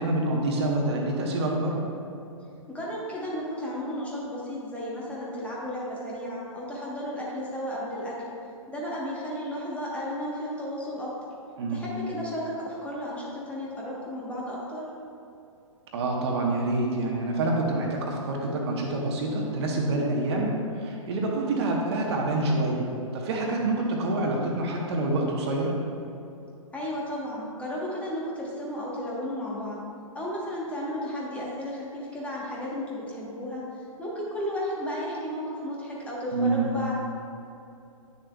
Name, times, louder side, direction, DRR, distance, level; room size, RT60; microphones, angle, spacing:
voice 1, 0.0-1.8 11.6-11.9 15.9-22.9 23.1-25.7 36.3-36.7, right 2 dB, 50° right, -1 dB, 1.2 m, -27 dB
voice 2, 2.7-8.4 8.7-11.1 11.7-14.9 26.7-29.8 30.1-33.6 34.0-36.9, equal, 5° left, -6 dB, 1.2 m, -33 dB
9.9 x 6.6 x 2.4 m, 2.7 s
figure-of-eight pair, 115°, 18 cm